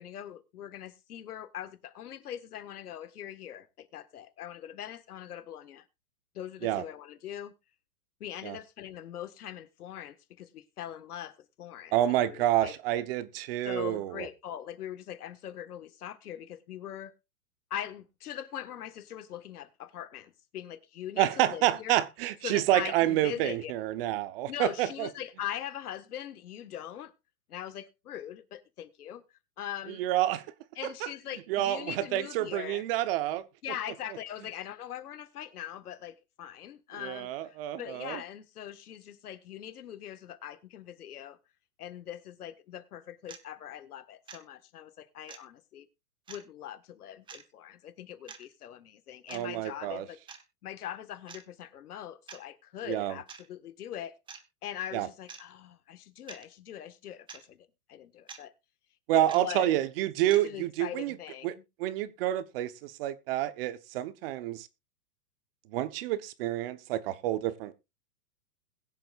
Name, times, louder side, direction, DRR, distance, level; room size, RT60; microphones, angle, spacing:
voice 1, 0.0-5.9 6.3-7.5 8.2-12.8 13.6-17.1 17.7-22.0 22.4-23.7 24.5-27.1 27.5-29.2 29.6-30.0 30.8-32.8 33.6-41.4 41.8-45.9 46.3-50.2 50.6-54.2 54.6-58.5 59.1-59.8 60.3-61.6, left 10 dB, 75° left, 1.7 m, -41 dB
voice 2, 11.9-14.3 21.2-25.1 29.9-30.5 30.8-31.1 31.5-33.5 37.0-38.2 49.3-50.1 52.9-53.1 54.9-55.1 59.1-61.2 61.4-64.7 65.7-67.8, right 13 dB, 40° right, 1.0 m, -29 dB
sound 1, 43.3-43.4 44.3-44.4 45.3-45.4 46.3-46.4 47.3-47.4 48.3-48.4 49.3-49.4 50.3-50.4 51.3-51.4 52.3-52.4 53.3-53.5 54.3-54.4 55.3-55.4 56.3-56.4 57.3-57.4 58.3-58.4 59.3-59.4 60.3-60.4, right 6 dB, 10° right, 1.0 m, -46 dB
21.5 x 7.6 x 2.5 m
hypercardioid pair, 145°, 45 cm